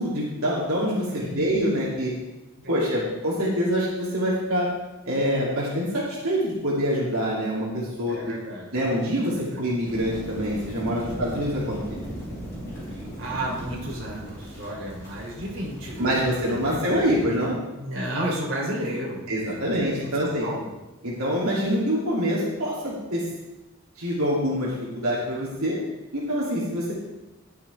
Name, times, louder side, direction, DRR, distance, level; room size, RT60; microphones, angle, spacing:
voice 1, 0.0-2.1 2.7-4.7 5.1-8.2 8.7-11.8 16.0-17.6 19.3-20.5 21.0-23.2 24.0-25.8 26.1-26.9, equal, 80° right, -6 dB, 2.9 m, -25 dB
voice 2, 1.1-1.5 2.6-3.1 8.1-8.8 9.2-9.6 11.0-11.2 12.9-17.0 17.8-19.3 19.5-20.0 20.2-20.7, right 1 dB, 55° right, -4 dB, 3.4 m, -33 dB
sound 1, 9.8-17.2, equal, 15° left, 4.5 m, -38 dB
19.5 x 6.9 x 3.5 m, 1.0 s
head